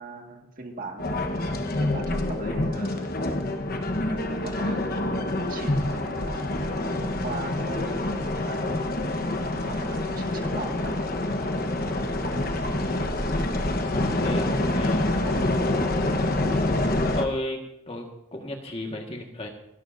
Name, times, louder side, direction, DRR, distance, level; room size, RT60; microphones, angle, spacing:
voice 1, 0.0-3.2 4.1-8.7 9.7-10.9, right 3 dB, 40° right, 2 dB, 1.9 m, -40 dB
sound 1, 1.0-17.3, left 1 dB, 45° left, 1.2 m, -26 dB
voice 2, 13.3-13.6 13.9-15.1 16.5-19.5, left 1 dB, 30° left, 2 dB, 1.6 m, -34 dB
28.0 x 12.5 x 2.7 m, 0.82 s
head